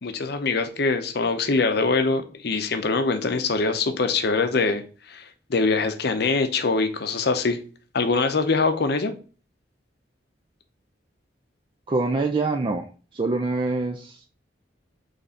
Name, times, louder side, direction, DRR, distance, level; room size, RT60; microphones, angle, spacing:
voice 1, 0.0-4.8 5.1-5.2 5.5-7.6 7.9-9.1, left 4 dB, 60° left, 0.6 m, -23 dB
voice 2, 11.9-14.3, right 3 dB, 25° right, 0.4 m, -25 dB
4.1 x 3.3 x 3.7 m
head